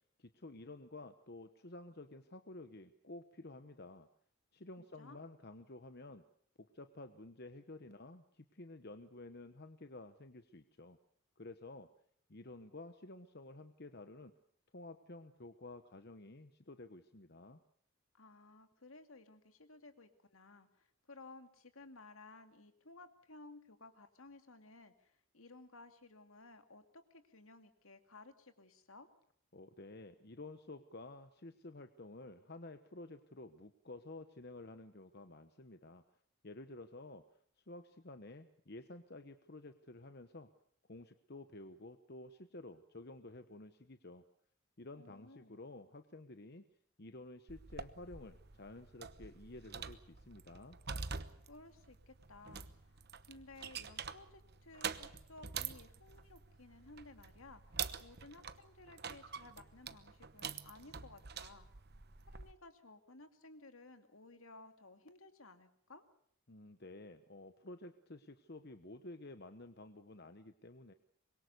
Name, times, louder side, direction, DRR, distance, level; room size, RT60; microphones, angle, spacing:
voice 1, 0.2-4.1 4.5-6.2 6.6-11.0 11.4-11.9 12.3-14.3 14.7-17.6 29.5-36.0 36.4-37.2 37.7-40.5 40.9-44.2 44.8-46.6 47.0-50.8 66.5-70.9, left 2 dB, 45° left, 9 dB, 1.1 m, -52 dB
voice 2, 4.8-5.2 18.1-29.1 44.9-45.6 51.5-57.6 58.0-61.7 62.3-66.0, left 2 dB, 70° left, 8 dB, 2.4 m, -57 dB
sound 1, 47.5-62.5, right 6 dB, 50° right, 1.0 m, -46 dB
25.0 x 22.5 x 6.8 m, 0.65 s
head